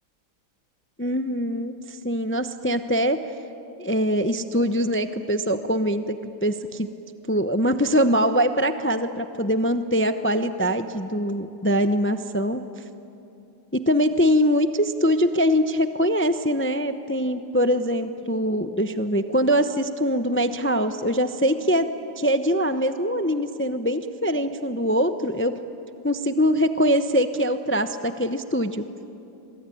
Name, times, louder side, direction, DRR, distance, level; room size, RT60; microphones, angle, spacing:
voice 1, 1.0-3.2 3.8-6.2 6.4-6.9 7.3-12.6 13.7-21.9 22.2-25.5 26.0-28.8, equal, 15° left, 9 dB, 0.4 m, -23 dB
26.5 x 22.5 x 9.9 m, 2.8 s
omnidirectional pair, 1.8 m